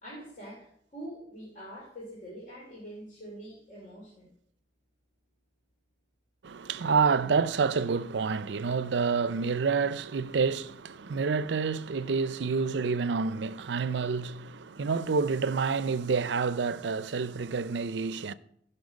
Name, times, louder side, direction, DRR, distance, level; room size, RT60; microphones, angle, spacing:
voice 1, 0.0-4.3, right 1 dB, 45° left, 2.7 m, -44 dB
voice 2, 6.4-18.3, right 5 dB, 70° right, 0.5 m, -28 dB
15.5 x 5.6 x 5.3 m
head